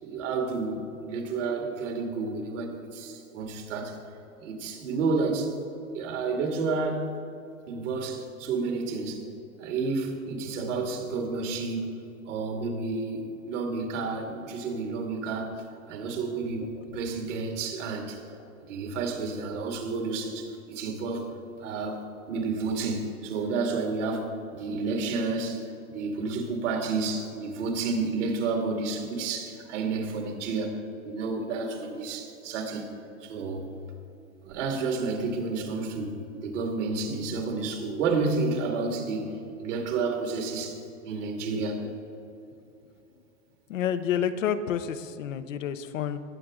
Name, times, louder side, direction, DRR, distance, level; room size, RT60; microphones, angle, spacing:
voice 1, 0.0-4.0 4.4-5.5 5.9-7.1 7.7-9.3 9.6-18.2 18.7-21.3 21.6-22.0 22.3-32.9 33.2-33.7 34.4-41.8, right 4 dB, 70° right, 3 dB, 2.3 m, -30 dB
voice 2, 43.7-46.2, left 9 dB, 80° left, 10 dB, 0.9 m, -29 dB
20.0 x 7.8 x 3.7 m, 2.8 s
hypercardioid pair, 105°, 38 cm